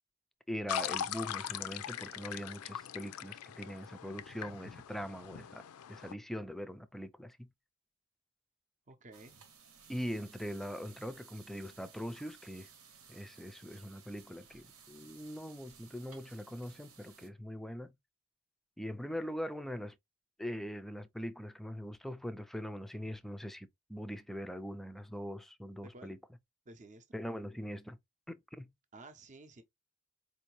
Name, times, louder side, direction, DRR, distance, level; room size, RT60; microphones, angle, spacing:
voice 1, 0.5-5.6 5.9-7.5 9.9-12.7 13.1-17.9 18.8-20.0 20.4-26.2 27.1-28.0 28.3-28.7, equal, ahead, 0.3 m, -42 dB
sound 1, 0.7-6.1, left 9 dB, 90° left, 0.4 m, -41 dB
voice 2, 8.9-9.4 25.8-26.1 26.7-27.2 28.9-29.6, right 2 dB, 35° right, 0.6 m, -53 dB
sound 2, 9.1-17.3, right 6 dB, 80° right, 1.0 m, -58 dB
4.5 x 2.7 x 2.9 m
head